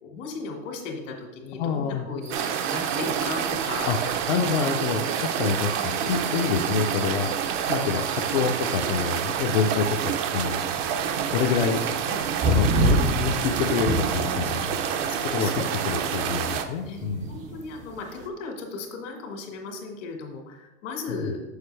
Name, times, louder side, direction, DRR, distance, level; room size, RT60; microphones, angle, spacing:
voice 1, 0.0-3.9 4.4-4.5 4.9-5.1 7.2-7.3 7.8-7.9 12.1-12.2 14.3-14.5 15.1-16.1 16.8-17.0 17.3-21.4, left 4 dB, 70° left, 2 dB, 1.9 m, -36 dB
voice 2, 1.6-2.1 3.8-4.0 4.3-7.3 7.7-10.6 11.3-11.9 12.5-14.8 15.3-17.4 21.1-21.3, left 6 dB, 55° left, 1 dB, 0.6 m, -27 dB
sound 1, 2.2-18.3, right 2 dB, 20° right, 0.4 m, -33 dB
sound 2, 2.3-16.7, right 8 dB, 65° right, 0.7 m, -28 dB
6.5 x 6.4 x 3.3 m, 1.1 s
supercardioid pair, 150°, 39 cm